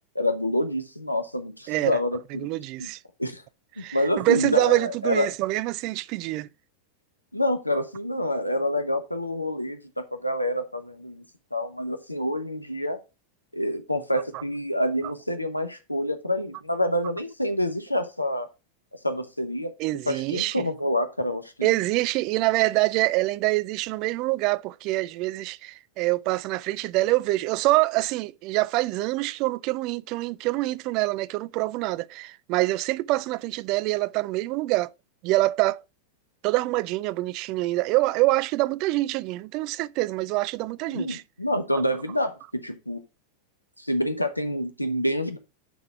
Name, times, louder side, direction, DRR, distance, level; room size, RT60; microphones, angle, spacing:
voice 1, 0.1-2.5 2.8-2.9 3.2-3.4 3.8-5.3 7.3-11.2 11.5-13.0 13.5-18.5 19.0-19.7 20.1-21.7 40.9-43.0 43.8-45.4, left 1 dB, 85° left, 0.9 m, -27 dB
voice 2, 1.7-2.0 2.3-3.0 3.8-6.5 14.3-14.4 19.8-20.6 21.6-34.9 35.2-35.8 36.4-41.2 41.7-41.8, right 19 dB, 40° right, 0.3 m, -25 dB
9.1 x 3.9 x 4.6 m
figure-of-eight pair, 90°, 0 cm